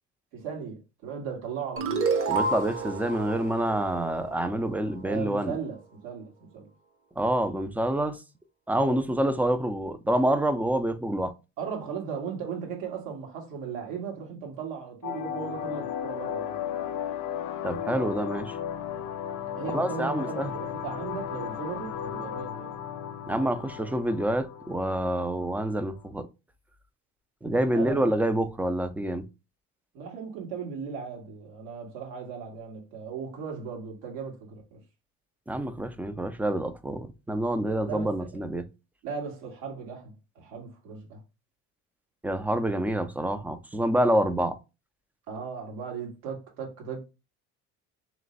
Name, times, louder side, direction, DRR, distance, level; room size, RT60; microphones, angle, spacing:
voice 1, 0.3-2.1 5.0-6.7 8.8-9.0 11.6-16.7 19.5-22.7 27.7-28.1 29.9-34.8 37.9-38.5 39.0-41.2 45.3-47.0, right 6 dB, 85° right, 1.8 m, -37 dB
sound 1, 1.8-5.0, right 4 dB, 40° right, 0.9 m, -30 dB
voice 2, 2.3-5.6 7.2-8.2 8.7-11.3 17.6-18.6 19.7-20.5 23.3-26.2 27.4-29.2 35.5-38.6 42.2-44.6, right 1 dB, 5° right, 0.3 m, -27 dB
sound 2, 15.0-26.0, left 9 dB, 60° left, 0.7 m, -35 dB
3.3 x 3.1 x 3.9 m
cardioid pair, 115°, 34 cm